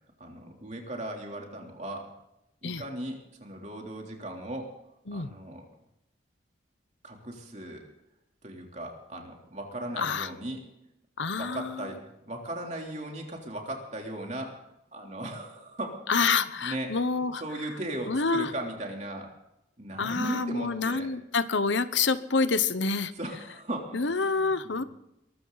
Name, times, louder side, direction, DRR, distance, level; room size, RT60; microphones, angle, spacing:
voice 1, 0.2-2.1 2.6-4.7 5.1-5.7 7.0-7.8 8.4-10.6 11.4-14.5 14.9-19.3 19.8-21.1 23.2-24.9, right 1 dB, 35° right, 1 dB, 3.4 m, -37 dB
voice 2, 10.0-10.3 11.2-11.9 16.1-17.4 18.1-18.5 20.0-23.1 23.9-24.8, left 4 dB, 75° left, 13 dB, 1.0 m, -27 dB
22.0 x 14.0 x 4.1 m, 0.86 s
head